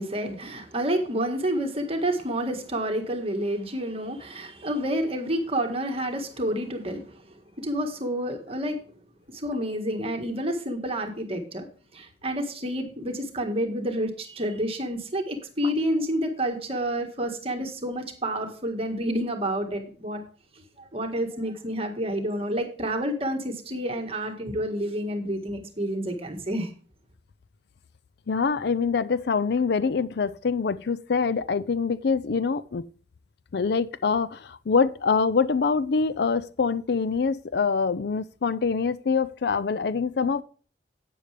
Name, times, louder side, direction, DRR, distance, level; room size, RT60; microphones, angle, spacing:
voice 1, 0.0-8.8 9.3-11.7 11.9-20.2 20.5-26.7, right 1 dB, 35° right, 1.6 m, -29 dB
voice 2, 28.3-32.9 33.5-40.4, left 5 dB, 65° left, 0.5 m, -25 dB
11.5 x 8.8 x 3.4 m
head